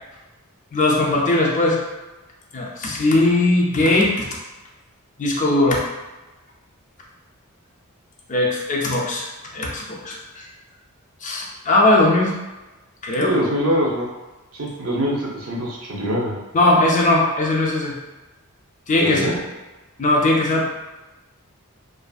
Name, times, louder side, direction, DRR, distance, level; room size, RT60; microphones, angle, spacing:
voice 1, 0.7-1.8 2.5-4.3 5.2-5.8 8.3-10.5 11.2-12.3 13.0-13.3 16.5-18.0 18.9-19.4 20.0-20.6, left 2 dB, 35° left, -2 dB, 0.4 m, -19 dB
voice 2, 13.2-14.1 14.5-16.4 19.0-19.4, equal, 70° right, -3 dB, 0.7 m, -23 dB
2.5 x 2.5 x 2.3 m, 1.1 s
head